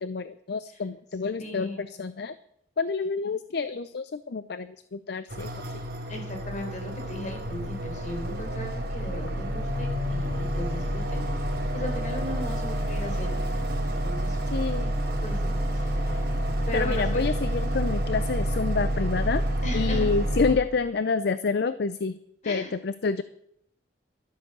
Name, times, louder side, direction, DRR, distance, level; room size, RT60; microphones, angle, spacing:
voice 1, 0.0-2.3 2.8-5.6 14.5-14.9 16.7-19.4 19.7-22.2 22.4-23.2, left 4 dB, 65° left, 14 dB, 0.5 m, -28 dB
voice 2, 1.4-1.8 6.1-11.4 11.7-13.4 13.9-14.4 15.2-16.1 16.7-17.2 17.6-17.9 19.6-20.0 22.4-22.7, left 1 dB, 45° left, 3 dB, 3.9 m, -37 dB
sound 1, 5.3-20.5, right 1 dB, 60° right, 3.4 m, -28 dB
12.5 x 11.0 x 6.7 m, 0.73 s
head